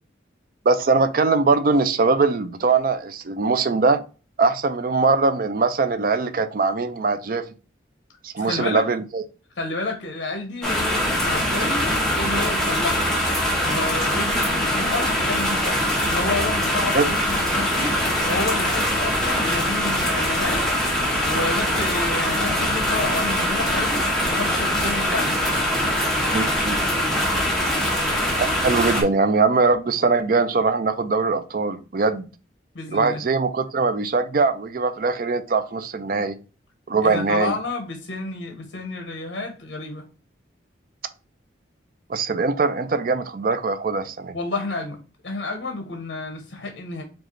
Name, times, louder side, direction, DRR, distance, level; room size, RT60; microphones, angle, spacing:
voice 1, 0.7-4.0 4.4-7.5 8.2-9.2 16.9-17.1 26.3-26.8 28.4-32.3 32.9-36.4 36.9-37.6 42.1-44.4, right 4 dB, 50° right, 0.4 m, -21 dB
voice 2, 8.4-8.8 9.6-13.1 13.6-18.0 18.2-20.6 21.2-25.4 32.7-33.2 37.0-40.0 44.3-45.0 45.2-47.0, left 2 dB, 60° left, 0.7 m, -30 dB
sound 1, 10.6-29.0, equal, 5° left, 1.0 m, -22 dB
4.8 x 2.4 x 2.9 m
head